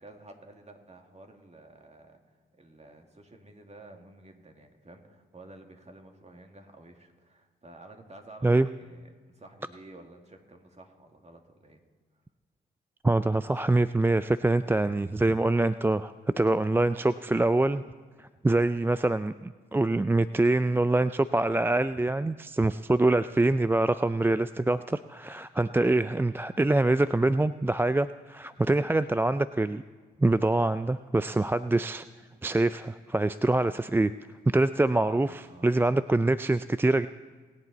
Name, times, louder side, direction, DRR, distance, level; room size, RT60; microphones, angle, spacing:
voice 1, 0.0-11.8 35.0-35.8, right 2 dB, 35° right, 3 dB, 2.3 m, -51 dB
voice 2, 13.0-17.8 18.2-29.8 30.2-32.1 32.4-34.1 34.5-35.3 35.6-37.1, right 2 dB, 10° right, 14 dB, 0.3 m, -25 dB
24.0 x 8.2 x 4.1 m, 1.5 s
supercardioid pair, 45°, 20 cm